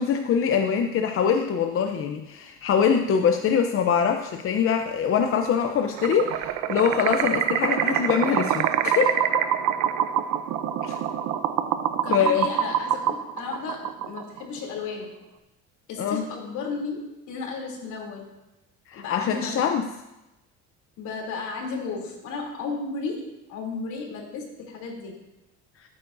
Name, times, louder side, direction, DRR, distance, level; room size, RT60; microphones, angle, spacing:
voice 1, 0.0-9.2 10.8-11.0 12.1-12.5 16.0-16.2 18.9-19.9, left 7 dB, 45° left, 5 dB, 0.7 m, -23 dB
sound 1, 6.0-14.4, right 10 dB, 80° right, 0.8 m, -25 dB
voice 2, 12.0-15.1 15.9-18.4 18.9-19.7 21.0-25.2, left 4 dB, 70° left, 0 dB, 3.2 m, -34 dB
16.0 x 8.7 x 2.7 m, 0.97 s
cardioid pair, 120°, 30 cm